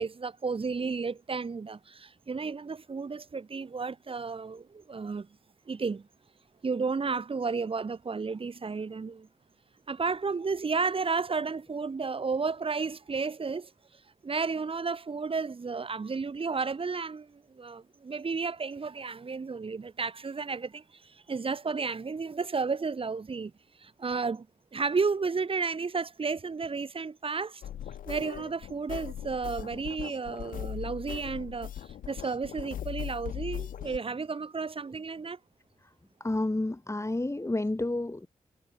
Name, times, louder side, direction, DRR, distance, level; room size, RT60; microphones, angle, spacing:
voice 1, 0.0-5.3 5.7-6.1 6.6-9.3 9.9-13.7 14.2-23.5 23.8-24.5 24.7-27.6 28.1-31.7 32.1-35.4, right 4 dB, 40° right, 1.2 m, -32 dB
sound 1, 27.6-34.0, left 10 dB, 85° left, 2.3 m, -39 dB
voice 2, 36.2-38.3, left 2 dB, 20° left, 4.3 m, -30 dB
supercardioid pair, 45°, 14 cm